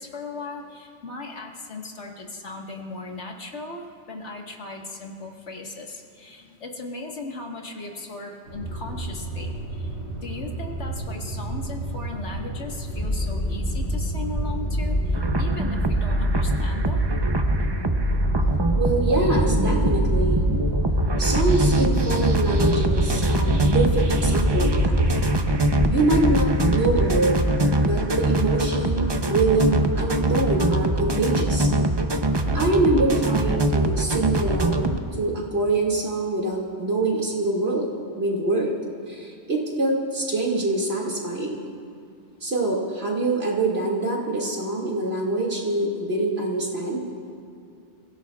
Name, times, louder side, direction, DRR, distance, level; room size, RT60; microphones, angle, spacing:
voice 1, 0.0-9.9 10.2-17.0, left 3 dB, 75° left, 1 dB, 1.9 m, -37 dB
sound 1, 8.5-25.2, right 2 dB, 85° right, 5.2 m, -32 dB
sound 2, 12.9-27.2, equal, 40° left, 3.4 m, -26 dB
sound 3, 15.1-35.0, right 2 dB, 25° right, 0.6 m, -24 dB
voice 2, 18.8-20.4 21.2-24.9 25.9-27.4 27.8-31.7 32.5-37.9 38.2-38.8 39.1-41.6 42.4-47.0, right 2 dB, 60° right, -2 dB, 2.5 m, -24 dB
28.0 x 16.5 x 2.4 m, 2.4 s
omnidirectional pair, 1.2 m